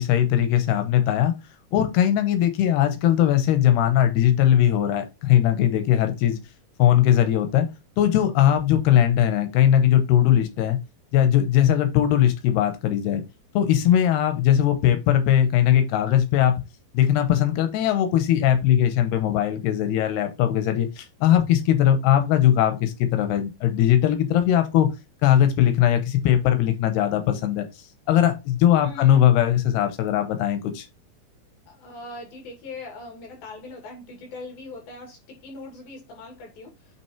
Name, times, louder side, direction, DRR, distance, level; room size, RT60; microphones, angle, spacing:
voice 1, 0.0-1.3 1.7-6.4 6.8-7.7 8.0-10.8 11.1-13.2 13.5-16.6 16.9-24.9 25.2-27.6 28.1-30.9, left 11 dB, 90° left, 3.0 m, -20 dB
voice 2, 28.8-29.3 31.7-37.0, left 2 dB, 70° left, 4.3 m, -40 dB
8.9 x 3.1 x 4.4 m
omnidirectional pair, 4.5 m